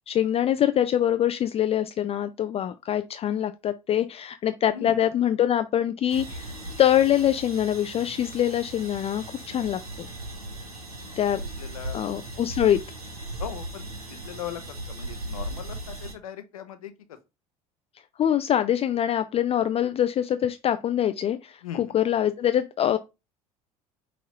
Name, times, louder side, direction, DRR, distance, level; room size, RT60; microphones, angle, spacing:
voice 1, 0.1-6.5 6.8-10.1 11.2-11.4 11.9-12.8 18.2-23.0, left 10 dB, 35° left, 0.4 m, -24 dB
voice 2, 4.7-5.0 11.0-11.3 11.6-12.0 13.4-17.2 21.6-22.0, left 9 dB, 75° left, 0.7 m, -39 dB
sound 1, 6.1-16.1, right 1 dB, 90° right, 0.9 m, -38 dB
5.8 x 3.0 x 3.0 m
figure-of-eight pair, 60°, 18 cm